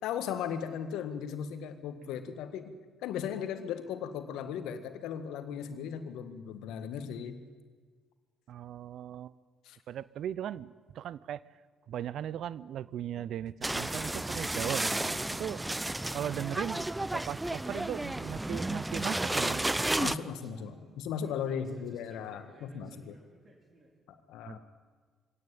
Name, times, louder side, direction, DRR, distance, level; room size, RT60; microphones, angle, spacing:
voice 1, 0.0-2.7 3.0-7.4 9.6-9.8 20.0-23.2 24.1-24.6, left 8 dB, 70° left, 9 dB, 1.7 m, -37 dB
voice 2, 8.5-9.3 9.9-11.4 11.9-15.7 16.1-19.7 24.5-24.6, right 10 dB, 60° right, 20 dB, 0.6 m, -38 dB
sound 1, 13.6-20.2, right 1 dB, 10° right, 0.7 m, -32 dB
sound 2, 18.3-23.9, right 2 dB, 35° right, 5.0 m, -56 dB
22.5 x 17.5 x 9.0 m, 1.5 s
hypercardioid pair, 50°, 0 cm